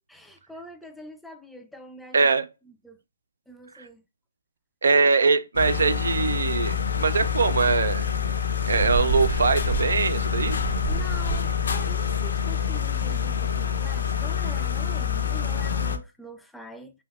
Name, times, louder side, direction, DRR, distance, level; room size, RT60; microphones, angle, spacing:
voice 1, 0.1-2.3 2.7-3.0 3.5-4.0 10.9-17.0, equal, ahead, 0.3 m, -44 dB
voice 2, 2.1-2.5 3.8-3.9 4.8-8.1 8.6-10.6, right 4 dB, 75° right, 0.4 m, -22 dB
sound 1, 5.6-16.0, left 7 dB, 70° left, 0.5 m, -26 dB
Rain, 8.7-15.7, right 7 dB, 55° right, 1.2 m, -34 dB
3.3 x 2.8 x 2.3 m
hypercardioid pair, 140°, 0 cm